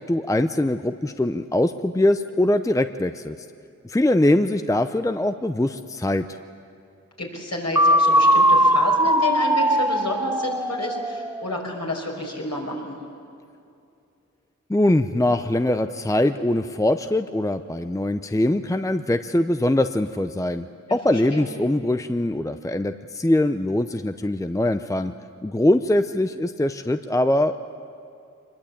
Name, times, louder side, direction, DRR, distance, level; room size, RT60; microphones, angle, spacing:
voice 1, 0.0-3.3 3.8-6.4 14.7-25.1 25.4-27.6, left 1 dB, 10° left, 9 dB, 0.7 m, -22 dB
voice 2, 7.2-13.0 20.9-21.4, left 2 dB, 55° left, 0 dB, 5.4 m, -30 dB
sound 1, 7.8-11.6, right 1 dB, 10° right, 1.0 m, -19 dB
24.5 x 21.0 x 8.6 m, 2.5 s
wide cardioid pair, 55°, 31 cm